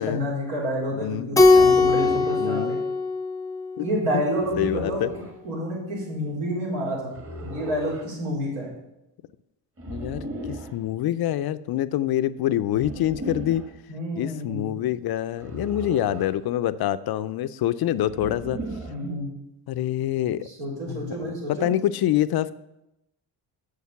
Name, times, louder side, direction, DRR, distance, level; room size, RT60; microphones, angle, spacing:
voice 1, 0.0-2.8 3.8-5.0 5.4-7.1 7.4-8.7 13.9-14.7 18.9-19.3 20.4-21.7, equal, 85° right, -3 dB, 3.7 m, -29 dB
voice 2, 0.9-1.3 2.4-2.7 3.8-3.9 4.1-4.2 4.6-5.1 9.9-10.2 10.7-13.6 14.2-18.6 19.7-20.5 20.9-22.5, left 12 dB, 55° left, 14 dB, 0.5 m, -26 dB
Keyboard (musical), 1.4-4.0, left 3 dB, 5° left, 0.6 m, -19 dB
sound 1, 1.5-2.4 4.4-5.4 7.1-8.1 9.8-10.8 12.7-13.7 15.4-16.4 18.1-19.1, right 1 dB, 25° right, 1.4 m, -36 dB
6.6 x 6.5 x 6.9 m, 0.89 s
cardioid pair, 100°, 48 cm